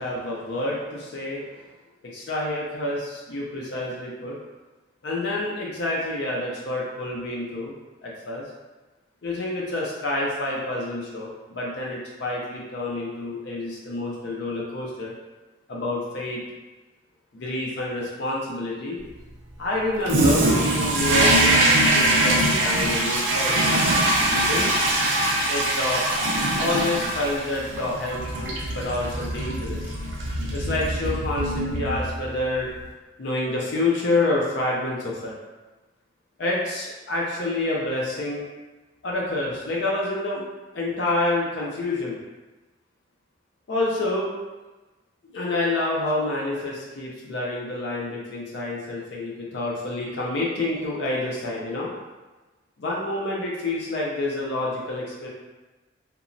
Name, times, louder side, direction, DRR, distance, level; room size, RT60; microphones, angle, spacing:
voice 1, 0.0-1.6 2.1-4.4 5.0-7.7 8.0-8.4 9.2-15.1 15.7-16.4 17.3-19.0 19.6-24.1 24.3-24.7 25.5-26.0 26.6-29.8 30.5-32.7 33.2-35.3 36.4-38.4 39.0-40.4 40.7-42.2 43.7-44.3 45.3-51.9 52.8-55.3, left 2 dB, 60° left, -4 dB, 0.5 m, -28 dB
Toilet flush, 20.0-32.4, right 1 dB, 75° right, 0.4 m, -22 dB
2.9 x 2.2 x 2.5 m, 1.2 s
head